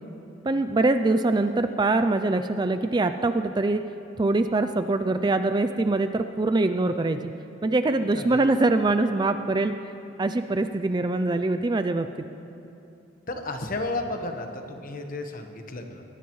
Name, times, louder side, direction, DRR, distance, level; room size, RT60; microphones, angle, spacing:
voice 1, 0.4-3.8 4.2-7.2 7.6-9.8 10.2-12.3, right 2 dB, 20° right, 9 dB, 0.4 m, -23 dB
voice 2, 8.1-8.7 13.3-16.0, left 2 dB, 45° left, 4 dB, 1.2 m, -33 dB
22.5 x 17.5 x 3.2 m, 2.8 s
head